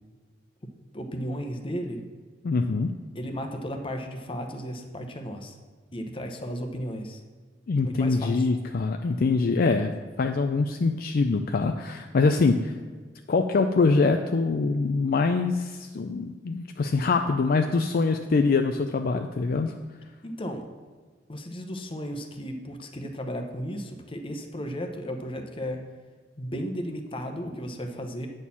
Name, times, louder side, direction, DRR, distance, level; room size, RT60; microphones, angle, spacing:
voice 1, 0.9-2.0 3.1-5.6 5.9-7.2 7.8-8.5 20.2-20.7 21.3-25.8 26.4-28.3, equal, 30° left, 5 dB, 0.9 m, -34 dB
voice 2, 2.4-2.9 7.7-9.9 10.2-12.7 13.3-19.7, left 4 dB, 55° left, 6 dB, 0.4 m, -24 dB
9.0 x 4.3 x 7.0 m, 1.5 s
head